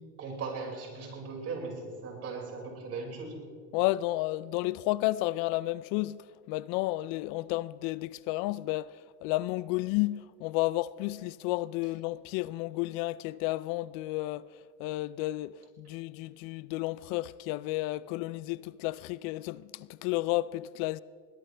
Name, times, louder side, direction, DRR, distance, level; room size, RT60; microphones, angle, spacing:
voice 1, 0.2-3.5, right 4 dB, 40° right, 5.4 m, -38 dB
voice 2, 3.7-21.0, left 18 dB, 60° left, 0.5 m, -32 dB
21.0 x 19.5 x 3.4 m
supercardioid pair, 115°, 36 cm